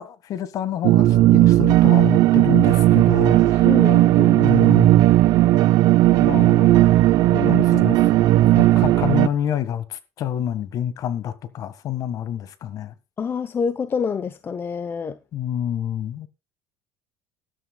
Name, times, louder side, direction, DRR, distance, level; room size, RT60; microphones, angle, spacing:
voice 1, 0.0-3.7 4.4-5.0 6.2-6.7 7.4-8.0 8.6-12.9 15.3-16.3, left 10 dB, 50° left, 1.7 m, -28 dB
sound 1, 0.8-9.3, right 15 dB, 60° right, 0.7 m, -15 dB
voice 2, 3.6-4.5 7.3-8.0 13.2-15.2, left 6 dB, 30° left, 0.9 m, -27 dB
18.0 x 12.5 x 2.3 m
cardioid pair, 120°, 8 cm